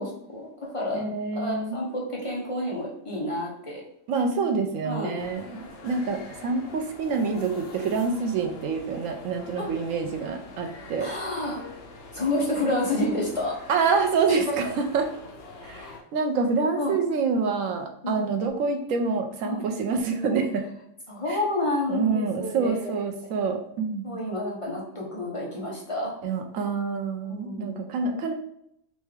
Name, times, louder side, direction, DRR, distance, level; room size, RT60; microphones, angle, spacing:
voice 1, 0.0-1.1 1.3-3.8 4.8-5.1 9.6-9.7 11.0-11.7 12.1-13.6 14.3-14.6 16.8-17.0 18.0-18.3 19.4-19.7 21.1-23.0 24.0-26.1 27.3-27.8, left 1 dB, 30° left, -4 dB, 0.9 m, -29 dB
voice 2, 0.9-1.8 4.1-11.1 13.7-15.1 15.7-20.7 21.3-21.4 21.9-24.2 26.2-28.3, right 4 dB, 90° right, 4 dB, 1.1 m, -27 dB
sound 1, 5.2-16.0, left 3 dB, 75° left, 1.1 m, -44 dB
4.1 x 3.5 x 3.3 m, 0.73 s
omnidirectional pair, 1.3 m